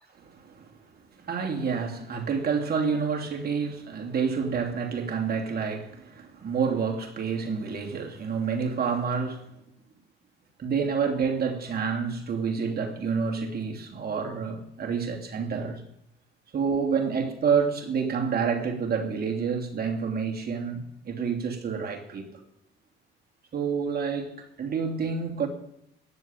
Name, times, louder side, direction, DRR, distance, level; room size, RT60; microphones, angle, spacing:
voice 1, 0.2-0.7 1.2-9.5 10.6-15.8 16.5-22.4 23.5-25.5, right 6 dB, 50° right, 3.0 m, -28 dB
19.5 x 7.6 x 9.1 m
cardioid pair, 90°, 20 cm